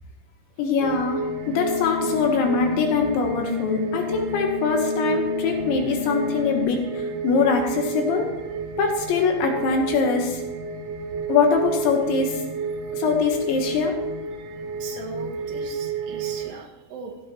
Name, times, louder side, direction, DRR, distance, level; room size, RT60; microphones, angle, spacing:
voice 1, 0.6-8.3 8.8-10.4 11.3-12.4 12.9-14.0, left 5 dB, 80° left, 2 dB, 3.5 m, -23 dB
sound 1, 0.8-16.5, right 4 dB, 85° right, 3.8 m, -31 dB
sound 2, 1.4-6.6, left 9 dB, 35° left, 5.0 m, -32 dB
voice 2, 14.8-17.2, right 4 dB, 65° right, 1 dB, 3.6 m, -39 dB
16.0 x 15.5 x 3.1 m, 1.1 s
omnidirectional pair, 5.4 m